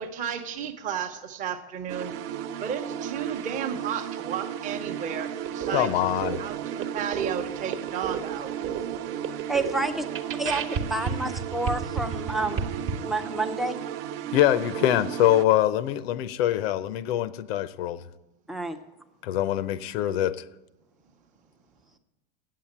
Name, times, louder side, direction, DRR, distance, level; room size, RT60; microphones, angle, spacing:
voice 1, 0.0-2.1 2.6-6.0 6.4-8.8, right 8 dB, 25° right, 6 dB, 0.7 m, -33 dB
sound 1, 1.9-15.4, right 10 dB, 70° right, 0.6 m, -35 dB
sound 2, 5.5-12.9, right 7 dB, 45° right, 1.0 m, -33 dB
voice 2, 5.7-6.4 14.3-18.0 19.2-20.4, left 12 dB, 90° left, 16 dB, 0.7 m, -24 dB
voice 3, 9.5-9.9 10.4-12.6 13.0-13.8 18.5-18.8, right 2 dB, ahead, 5 dB, 0.3 m, -29 dB
8.7 x 7.6 x 8.6 m, 1.0 s
supercardioid pair, 155°, 30 cm